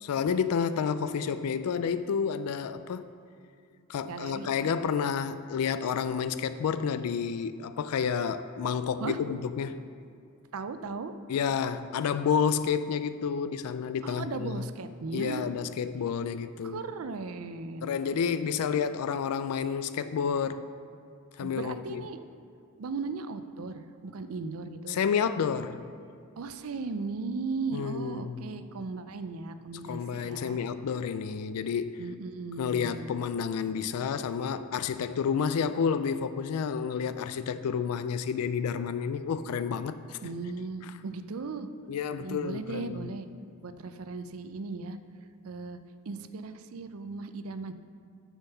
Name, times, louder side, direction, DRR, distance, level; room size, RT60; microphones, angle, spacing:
voice 1, 0.0-3.0 3.9-9.8 11.3-14.6 15.1-16.8 17.8-20.6 21.4-22.0 24.9-25.8 27.7-28.5 29.9-32.0 32.6-40.2 41.9-43.1, left 6 dB, 80° left, 12 dB, 0.3 m, -30 dB
voice 2, 4.0-4.5 9.0-9.2 10.5-11.1 14.0-15.4 16.6-17.9 21.4-22.2 22.8-25.0 26.4-30.6 32.0-33.2 40.2-41.7 42.2-43.3 43.6-45.0 45.4-45.8 46.1-47.7, right 4 dB, 70° right, 11 dB, 0.5 m, -37 dB
7.3 x 7.0 x 5.5 m, 2.4 s
head